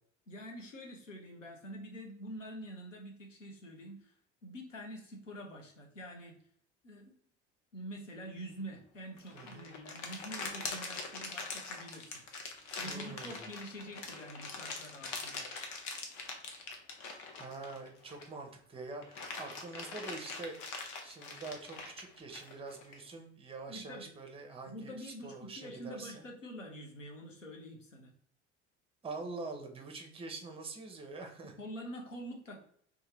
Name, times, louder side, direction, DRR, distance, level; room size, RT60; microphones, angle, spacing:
voice 1, 0.3-4.1 4.4-6.3 6.8-7.1 7.7-12.2 12.8-15.5 23.7-24.1 24.7-28.1 31.6-32.6, equal, 90° left, 1 dB, 0.7 m, -46 dB
sound 1, 9.2-18.4 18.8-23.0, left 4 dB, 50° left, 0.7 m, -43 dB
voice 2, 9.3-9.7 12.8-13.5 17.3-26.3 29.0-31.6, right 3 dB, 15° right, 4 dB, 0.6 m, -45 dB
2.7 x 2.2 x 3.1 m, 0.62 s
figure-of-eight pair, 65°, 36 cm